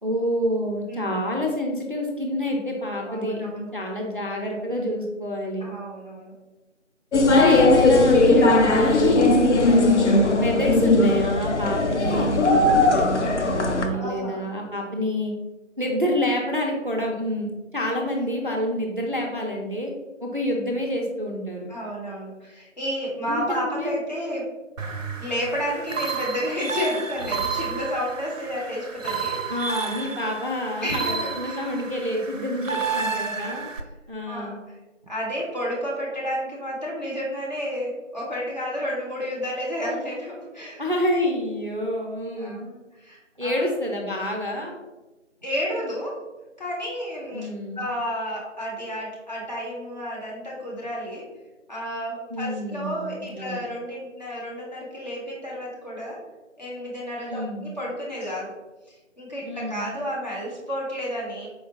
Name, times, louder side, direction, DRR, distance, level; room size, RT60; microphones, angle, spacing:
voice 1, 0.0-5.7 7.1-9.3 9.7-12.6 12.9-15.3 15.8-19.9 20.2-21.7 23.3-24.0 29.5-33.7 34.1-34.6 40.8-42.7 43.4-44.8 47.3-47.8 52.3-53.6 57.3-57.7 59.5-59.9, left 1 dB, 45° right, 0 dB, 0.4 m, -28 dB
voice 2, 3.0-3.6 5.6-6.3 13.9-14.5 21.7-24.5 25.2-29.6 30.8-31.6 32.9-33.6 34.3-34.8 35.0-40.8 42.4-43.7 45.4-46.2 46.6-47.5 47.8-51.3 51.7-56.2 56.6-58.5 58.9-61.5, equal, 35° left, -5 dB, 0.9 m, -31 dB
sound 1, 7.1-13.9, left 2 dB, 65° left, 0.5 m, -18 dB
sound 2, 24.8-33.8, right 5 dB, 90° right, 0.6 m, -31 dB
4.3 x 2.1 x 2.8 m, 1.1 s
figure-of-eight pair, 165°, 38 cm